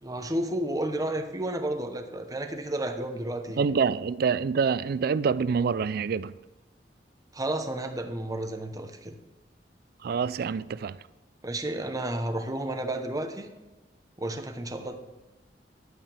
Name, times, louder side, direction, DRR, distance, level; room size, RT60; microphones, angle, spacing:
voice 1, 0.0-3.7 7.3-9.1 11.4-13.5 14.2-14.9, right 1 dB, 20° right, 1.0 m, -32 dB
voice 2, 3.6-6.3 10.0-11.0, right 5 dB, 60° right, 0.3 m, -26 dB
11.0 x 8.6 x 3.5 m
head